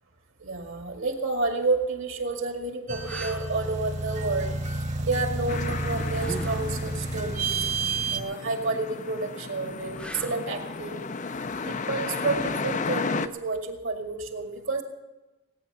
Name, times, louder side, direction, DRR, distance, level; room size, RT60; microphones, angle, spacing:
voice 1, 0.4-4.5 5.0-7.6 8.1-11.1 11.6-14.8, right 3 dB, 60° right, 4 dB, 2.0 m, -30 dB
sound 1, 1.4-1.6 2.3-2.4 3.0-3.5 6.1-6.7 9.9-10.6 13.5-13.7, equal, 5° left, 0.8 m, -38 dB
sound 2, 2.9-8.2, right 3 dB, 30° right, 1.2 m, -30 dB
sound 3, 5.5-13.3, left 4 dB, 35° left, 0.5 m, -34 dB
18.5 x 9.5 x 6.8 m, 1.1 s
head